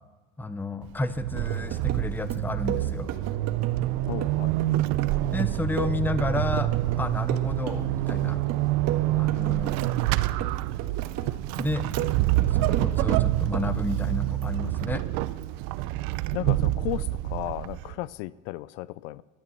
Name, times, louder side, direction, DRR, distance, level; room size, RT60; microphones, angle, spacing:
voice 1, 0.4-3.1 5.3-6.7 7.0-8.4 9.2-9.8 11.6-11.8 12.6-15.0, left 2 dB, 5° left, 12 dB, 0.6 m, -31 dB
Vehicle / Accelerating revving vroom / Squeak, 0.8-18.0, right 16 dB, 60° right, 0.7 m, -27 dB
sound 1, 1.5-2.1 2.3-3.9 4.2-7.0 7.3-8.2 8.5-10.1 10.4-11.3 11.6-13.2 13.5-13.7, right 10 dB, 45° right, 1.6 m, -34 dB
voice 2, 4.1-4.5 16.3-19.2, left 17 dB, 70° left, 20 dB, 0.5 m, -34 dB
12.0 x 11.0 x 7.0 m, 1.2 s
supercardioid pair, 115°, 38 cm